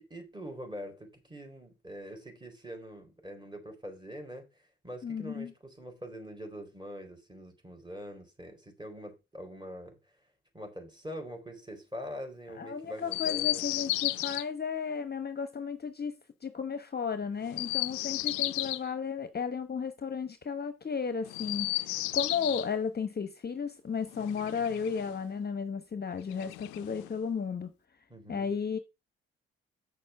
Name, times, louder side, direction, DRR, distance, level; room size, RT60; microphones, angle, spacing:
voice 1, 0.0-4.5 4.8-10.0 10.5-13.8 28.1-28.5, equal, 15° right, 4.3 m, -44 dB
voice 2, 5.0-5.5 12.5-16.1 16.4-27.7 28.3-28.8, left 6 dB, 30° left, 1.0 m, -34 dB
Chirp tweet, 13.1-14.4 17.4-18.9 21.2-22.7 24.1-25.2 26.3-27.2, left 19 dB, 70° left, 0.5 m, -33 dB
7.4 x 6.5 x 5.7 m
hypercardioid pair, 45°, 30 cm